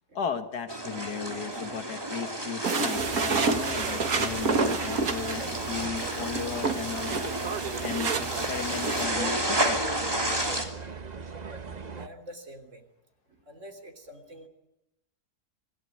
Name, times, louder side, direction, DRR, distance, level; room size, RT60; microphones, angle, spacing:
voice 1, 0.1-7.2 7.8-9.8, left 7 dB, 80° left, 8 dB, 1.9 m, -36 dB
sound 1, 0.7-10.6, right 1 dB, 15° right, 3.2 m, -32 dB
sound 2, 2.6-9.0, right 4 dB, 65° right, 2.1 m, -30 dB
sound 3, 2.9-12.1, right 5 dB, 30° right, 1.0 m, -38 dB
voice 2, 12.0-12.9 13.3-14.5, equal, 50° right, 6 dB, 3.7 m, -47 dB
26.5 x 17.5 x 9.3 m, 0.90 s
omnidirectional pair, 1.7 m